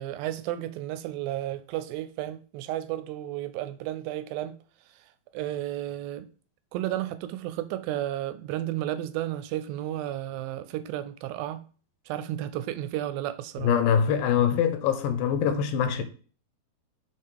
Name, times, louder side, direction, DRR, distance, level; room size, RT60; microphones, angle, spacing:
voice 1, 0.0-4.6 4.9-6.3 6.7-11.6 12.1-13.7, right 13 dB, 80° right, 2.2 m, -33 dB
voice 2, 13.6-16.0, left 8 dB, 80° left, 2.4 m, -24 dB
5.8 x 4.8 x 4.6 m
omnidirectional pair, 4.3 m